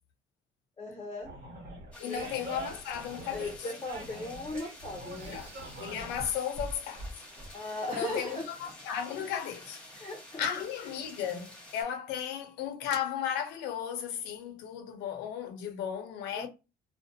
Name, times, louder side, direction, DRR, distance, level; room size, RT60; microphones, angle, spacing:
voice 1, 0.8-1.3 2.0-2.3 3.3-5.4 7.5-8.4 9.9-10.5 16.3-16.5, left 2 dB, 25° left, 0.6 m, -38 dB
Animal, 1.2-6.3, right 2 dB, 65° right, 1.2 m, -44 dB
sound 1, 1.9-11.8, left 1 dB, 5° left, 1.0 m, -50 dB
voice 2, 2.0-3.7 5.3-5.5 5.8-7.1 7.9-9.8 10.4-16.5, left 9 dB, 90° left, 0.6 m, -35 dB
sound 2, 5.1-7.5 7.8-8.4, right 1 dB, 40° right, 0.6 m, -44 dB
2.5 x 2.2 x 2.6 m
cardioid pair, 110°, 17 cm